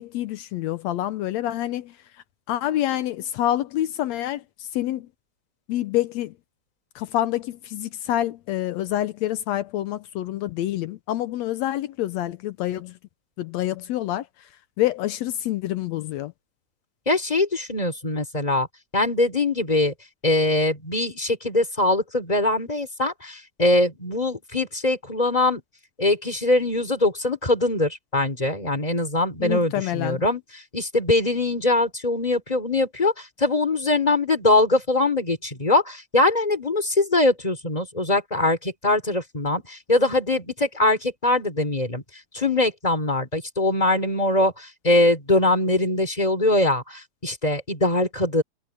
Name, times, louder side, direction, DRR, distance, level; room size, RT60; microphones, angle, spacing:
voice 1, 0.0-1.9 2.5-4.4 4.7-5.1 5.7-6.3 7.0-12.9 13.4-14.3 14.8-16.3 29.4-30.2, left 13 dB, 75° left, 1.8 m, -27 dB
voice 2, 17.0-18.7 18.9-19.9 20.2-25.6 26.0-42.0 42.3-48.4, left 2 dB, 15° left, 3.4 m, -22 dB
omnidirectional pair, 3.3 m